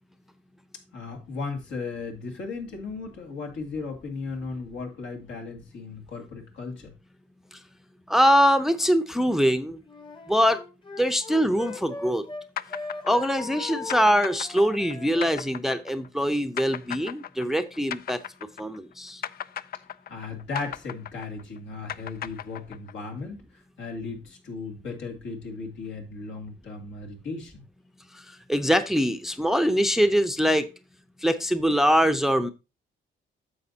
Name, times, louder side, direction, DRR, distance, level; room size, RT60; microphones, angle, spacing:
voice 1, 0.9-6.9 20.1-27.6, left 4 dB, 75° left, 2.5 m, -36 dB
voice 2, 8.1-9.8 10.3-10.6 11.0-12.3 13.0-18.2 18.6-19.2 28.5-30.7 31.2-32.5, equal, ahead, 0.6 m, -23 dB
Wind instrument woodwind instrument, 9.8-12.4 12.7-15.5, left 3 dB, 25° left, 1.1 m, -39 dB
sound 1, 12.6-18.9 19.2-23.1, left 10 dB, 50° left, 0.4 m, -37 dB
9.5 x 7.0 x 2.8 m
cardioid pair, 90°, 20 cm